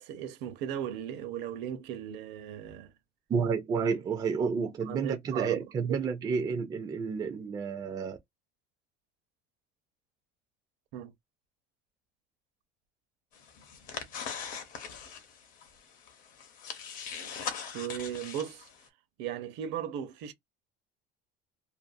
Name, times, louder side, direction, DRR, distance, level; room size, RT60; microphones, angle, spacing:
voice 1, 0.0-2.9 4.4-4.5 4.9-5.6 5.9-6.0 10.9-11.1 17.7-18.7 19.2-20.3, right 10 dB, 65° right, 0.8 m, -37 dB
voice 2, 3.3-8.2, right 5 dB, 20° right, 0.4 m, -30 dB
sound 1, 13.3-18.9, left 7 dB, 45° left, 0.7 m, -41 dB
2.6 x 2.4 x 2.5 m
cardioid pair, 165°, 20 cm